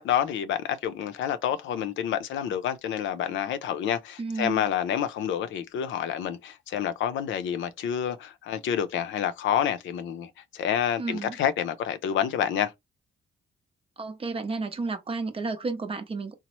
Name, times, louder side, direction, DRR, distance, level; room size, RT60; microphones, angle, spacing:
voice 1, 0.0-12.7, left 9 dB, 75° left, 0.5 m, -28 dB
voice 2, 4.2-4.7 11.0-11.4 14.0-16.4, right 3 dB, 30° right, 0.6 m, -32 dB
2.9 x 2.0 x 2.9 m
cardioid pair, 90°, 20 cm